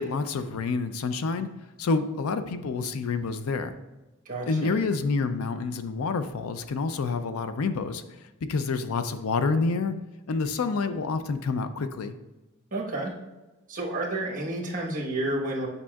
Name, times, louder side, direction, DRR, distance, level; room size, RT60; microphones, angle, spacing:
voice 1, 0.0-1.5 1.8-3.8 4.5-8.0 8.4-9.9 10.3-12.1, left 4 dB, 70° left, 11 dB, 0.4 m, -28 dB
voice 2, 4.2-4.8 12.7-13.1 13.7-15.7, right 1 dB, 35° right, -1 dB, 1.2 m, -30 dB
8.6 x 5.3 x 2.3 m, 1.1 s
head